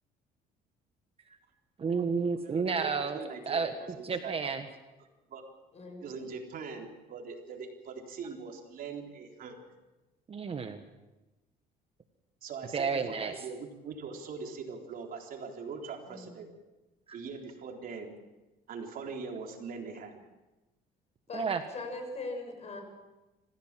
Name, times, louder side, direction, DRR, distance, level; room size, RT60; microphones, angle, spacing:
voice 1, 1.8-3.7 4.0-4.6 10.3-10.8 12.7-13.4 17.1-17.2 21.3-21.6, right 5 dB, 35° right, 7 dB, 1.4 m, -31 dB
voice 2, 2.4-4.5 5.3-5.4 6.0-9.7 12.4-16.5 17.1-18.2 18.7-20.2, right 5 dB, 60° right, 2 dB, 3.9 m, -42 dB
voice 3, 5.7-6.1 16.1-16.4 21.3-22.8, left 2 dB, 40° left, 4 dB, 6.9 m, -40 dB
26.0 x 16.0 x 7.6 m, 1.1 s
cardioid pair, 110°, 17 cm